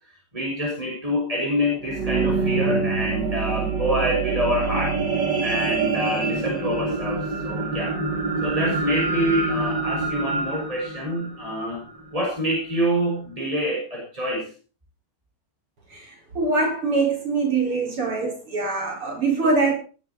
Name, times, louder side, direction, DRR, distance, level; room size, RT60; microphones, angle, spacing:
voice 1, 0.3-5.0 5.4-7.9 8.4-11.8 12.1-14.5, equal, 15° right, 6.0 m, -26 dB
sound 1, 1.6-12.1 12.7-12.8, right 4 dB, 55° right, 3.1 m, -26 dB
voice 2, 15.9-19.7, right 3 dB, 85° right, 6.2 m, -23 dB
19.0 x 14.0 x 4.3 m
omnidirectional pair, 2.4 m